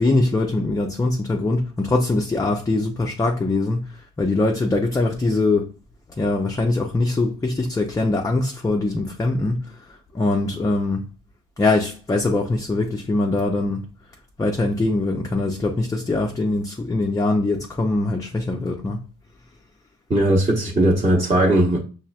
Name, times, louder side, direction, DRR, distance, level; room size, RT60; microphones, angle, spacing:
voice 1, 0.0-5.7 6.2-9.8 10.1-11.1 11.6-13.9 14.4-19.0 20.9-21.0, left 2 dB, 10° left, 0.4 m, -22 dB
voice 2, 20.1-21.8, right 1 dB, 20° right, 0.9 m, -18 dB
5.7 x 2.4 x 2.3 m
cardioid pair, 105°, 30 cm